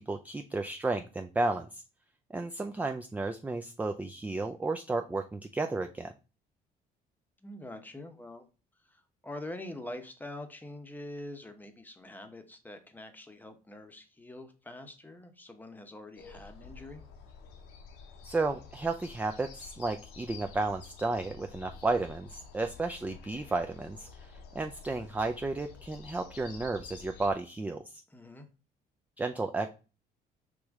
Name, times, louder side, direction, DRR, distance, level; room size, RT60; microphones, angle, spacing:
voice 1, 0.0-1.8 2.3-6.1 18.2-28.0 29.2-29.7, right 3 dB, 10° right, 6 dB, 0.3 m, -33 dB
voice 2, 7.4-8.4 8.9-17.0 28.1-28.5, left 1 dB, 10° left, 7 dB, 0.8 m, -45 dB
sound 1, 16.2-27.3, left 5 dB, 85° left, 0.8 m, -50 dB
4.9 x 3.1 x 3.5 m, 0.32 s
cardioid pair, 110°, 17 cm